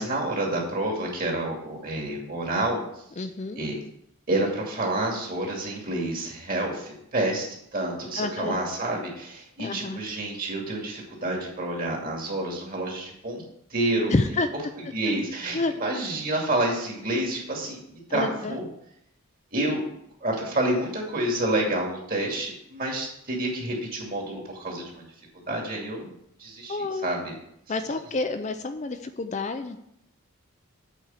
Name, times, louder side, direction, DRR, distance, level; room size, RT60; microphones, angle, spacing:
voice 1, 0.0-2.8 3.6-3.7 4.3-7.5 7.7-13.4 13.7-14.2 14.9-18.6 19.5-19.8 20.2-25.0 25.5-26.1 26.4-26.8 27.0-27.4, right 1 dB, 40° right, -1 dB, 2.4 m, -28 dB
voice 2, 3.2-3.6 8.2-8.6 9.6-10.0 14.1-14.5 15.5-15.7 18.1-18.6 26.7-27.1 27.7-29.8, left 3 dB, 30° left, 8 dB, 0.4 m, -28 dB
8.3 x 4.6 x 7.2 m, 0.74 s
head